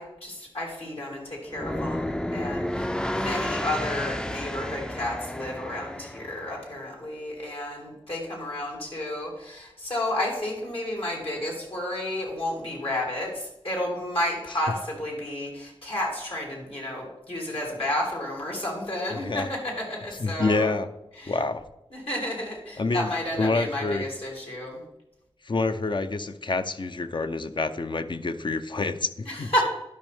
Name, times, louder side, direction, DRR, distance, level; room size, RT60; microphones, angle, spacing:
voice 1, 0.0-20.7 21.2-21.4 21.9-24.8 29.3-29.6, left 1 dB, 70° left, -2 dB, 3.0 m, -31 dB
sound 1, 1.5-6.6, left 1 dB, 10° left, 0.4 m, -31 dB
voice 2, 19.1-19.5 20.2-20.9 21.3-21.6 22.8-23.1 23.4-24.1 25.4-29.6, left 3 dB, 50° left, 10 dB, 0.6 m, -27 dB
12.0 x 5.4 x 3.5 m, 0.89 s
cardioid pair, 45°, 10 cm